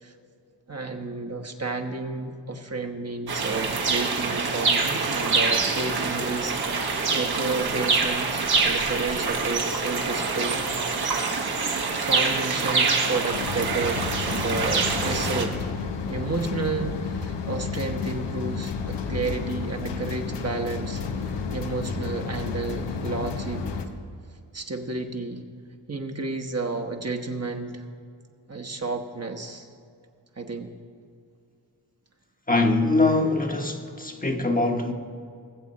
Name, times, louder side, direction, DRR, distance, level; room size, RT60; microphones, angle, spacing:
voice 1, 0.7-10.7 12.0-15.6 16.1-23.6 24.5-25.4 25.9-27.8 28.5-29.7 30.4-30.7, right 3 dB, 35° right, 1.2 m, -31 dB
sound 1, 3.3-15.5, right 4 dB, 65° right, 1.5 m, -25 dB
sound 2, 13.3-23.9, left 5 dB, 90° left, 0.9 m, -31 dB
voice 2, 32.5-34.9, left 2 dB, 20° left, 1.1 m, -23 dB
19.5 x 7.3 x 4.2 m
cardioid pair, 50°, 41 cm